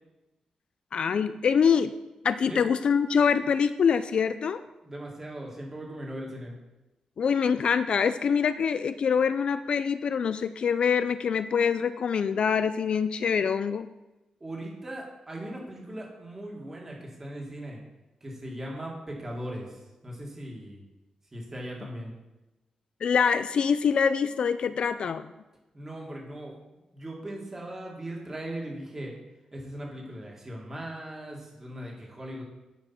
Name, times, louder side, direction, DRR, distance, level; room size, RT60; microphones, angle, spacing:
voice 1, 0.9-1.9 2.2-4.6 7.2-13.9 23.0-25.3, left 6 dB, 55° left, 12 dB, 0.3 m, -25 dB
voice 2, 4.8-6.6 14.4-17.8 18.2-19.8 20.0-20.8 21.3-22.1 25.7-26.5 26.9-29.1 29.5-32.4, right 1 dB, 20° right, -2 dB, 2.1 m, -39 dB
10.0 x 5.1 x 5.7 m, 1.0 s
wide cardioid pair, 155°, 2 cm